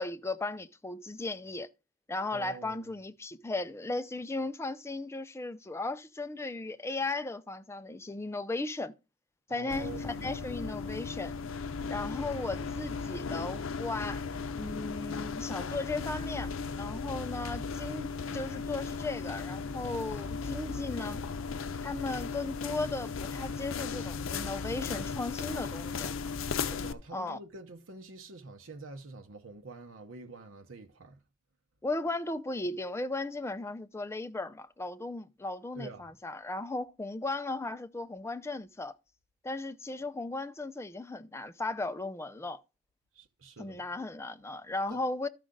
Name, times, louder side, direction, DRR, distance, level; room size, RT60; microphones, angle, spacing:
voice 1, 0.0-1.7 2.1-9.0 9.5-11.3 11.9-14.2 14.5-21.2 21.8-26.1 27.1-27.4 31.8-39.0 39.4-42.6 43.6-45.3, left 2 dB, 15° left, 0.4 m, -36 dB
voice 2, 2.3-2.9 9.5-10.6 26.7-31.2 35.8-36.1 43.1-43.8 44.9-45.0, right 3 dB, 85° right, 0.9 m, -46 dB
sound 1, 9.7-26.9, left 5 dB, 90° left, 0.6 m, -36 dB
13.0 x 5.0 x 3.8 m
head